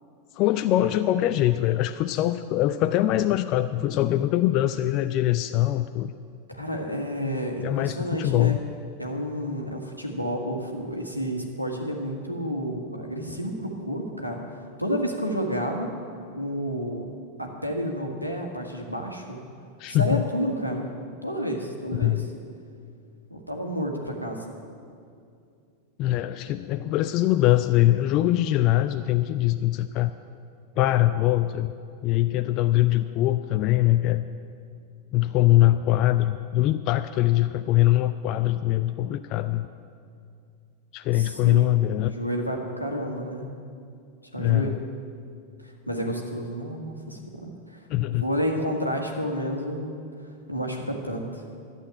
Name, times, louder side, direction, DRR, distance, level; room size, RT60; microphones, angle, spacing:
voice 1, 0.4-6.1 7.6-8.6 19.8-20.2 21.9-22.3 26.0-30.1 30.8-31.7 32.0-34.2 35.1-39.7 40.9-42.1 44.4-44.8 47.9-48.2, left 14 dB, 40° left, 10 dB, 0.4 m, -22 dB
voice 2, 6.5-8.6 9.0-15.9 16.3-17.1 17.4-19.4 19.9-20.9 21.2-22.3 23.3-24.5 41.1-41.7 42.0-43.5 44.3-44.7 45.6-47.8 48.1-50.0 50.5-51.4, equal, 90° left, 1 dB, 1.6 m, -30 dB
11.5 x 8.2 x 8.9 m, 2.4 s
figure-of-eight pair, 90°, 0 cm